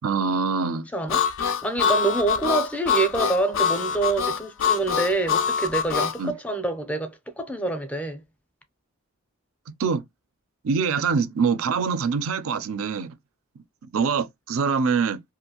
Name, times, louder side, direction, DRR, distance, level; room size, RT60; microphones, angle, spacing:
voice 1, 0.0-0.9 6.2-6.3 9.8-10.0 10.6-13.2 13.9-15.2, right 5 dB, 70° right, 0.4 m, -24 dB
voice 2, 0.9-1.2 1.6-8.2, right 2 dB, 5° left, 0.5 m, -26 dB
Harmonica, 1.1-6.2, left 7 dB, 60° left, 0.3 m, -24 dB
2.6 x 2.4 x 2.8 m
head